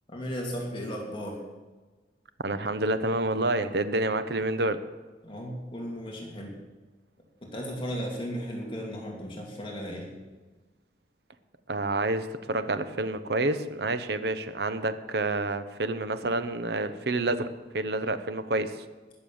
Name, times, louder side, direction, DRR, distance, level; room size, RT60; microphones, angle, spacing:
voice 1, 0.1-1.4 5.2-6.6 7.4-10.1, equal, 30° left, -1 dB, 2.8 m, -35 dB
voice 2, 2.4-4.8 11.7-17.5 17.7-18.8, right 2 dB, 65° right, 11 dB, 0.9 m, -28 dB
20.0 x 6.9 x 7.1 m, 1.3 s
head